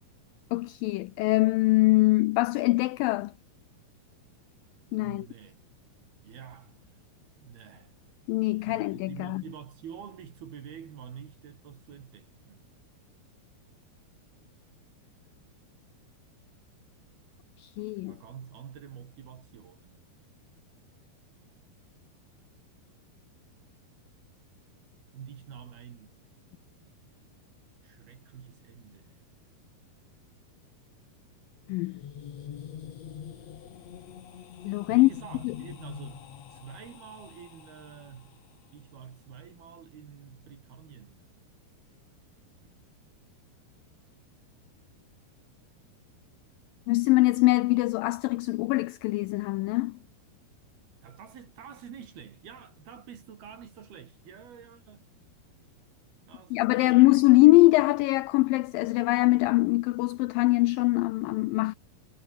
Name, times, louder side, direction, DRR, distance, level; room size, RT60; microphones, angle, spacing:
voice 1, 0.5-3.3 4.9-5.3 8.3-9.4 17.6-18.2 31.7-32.0 34.7-35.1 35.4-35.5 46.9-50.0 56.5-61.8, left 20 dB, 90° left, 1.9 m, -23 dB
voice 2, 4.9-5.6 6.2-7.0 7.4-7.9 8.6-12.7 17.7-20.0 25.1-26.2 27.8-29.2 34.9-38.4 38.7-41.2 42.6-42.8 51.0-55.1 56.3-57.1, right 8 dB, 70° right, 4.6 m, -47 dB
sound 1, 31.5-38.5, left 9 dB, 50° left, 2.5 m, -45 dB
omnidirectional pair, 4.6 m